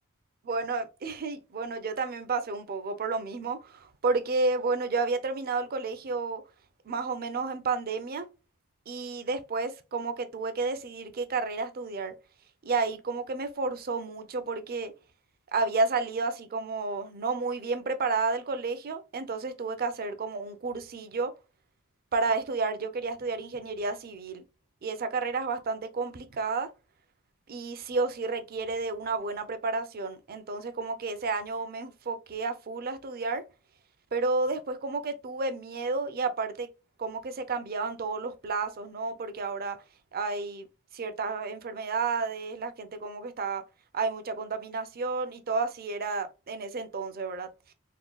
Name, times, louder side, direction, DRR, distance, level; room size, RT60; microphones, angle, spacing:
voice 1, 0.5-6.4 6.9-8.3 8.9-12.1 12.6-14.9 15.5-21.3 22.1-24.4 24.8-26.7 27.5-33.4 34.1-36.7 37.0-39.8 40.1-40.7 40.9-43.6 43.9-47.5, right 3 dB, 45° right, 0.5 m, -31 dB
3.6 x 2.2 x 2.2 m
head